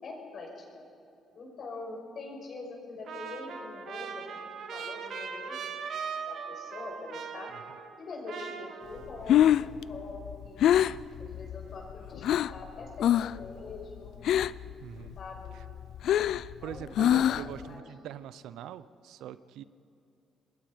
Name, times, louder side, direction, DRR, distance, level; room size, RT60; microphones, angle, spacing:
voice 1, 0.0-0.8 1.3-4.5 4.7-5.6 6.3-7.5 8.0-9.5 9.9-10.7 11.2-14.2 15.2-15.5 16.6-17.8, left 3 dB, 50° left, 1 dB, 5.8 m, -43 dB
Trumpet, 3.1-8.0 8.3-9.3, right 6 dB, 65° right, 1.7 m, -40 dB
Breathing, 9.0-12.6 13.0-13.5 13.7-14.7 15.1-17.6, left 11 dB, 70° left, 0.4 m, -25 dB
voice 2, 14.8-15.2 15.5-15.6 16.6-19.6, right 11 dB, 90° right, 15 dB, 0.7 m, -43 dB
27.0 x 20.5 x 5.1 m, 2.7 s
cardioid pair, 115°, 0 cm